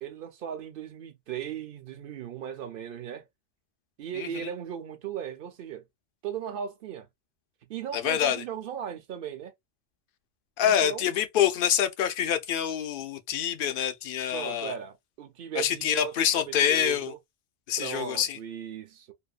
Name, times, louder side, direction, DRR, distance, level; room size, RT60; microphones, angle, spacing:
voice 1, 0.0-3.3 4.0-5.9 6.2-7.1 7.7-9.5 10.6-11.1 14.3-17.2 17.8-19.1, right 9 dB, 60° right, 0.7 m, -37 dB
voice 2, 7.9-8.4 10.6-14.7 15.5-17.1 17.7-18.4, left 9 dB, 60° left, 0.6 m, -26 dB
2.7 x 2.2 x 2.3 m
omnidirectional pair, 1.2 m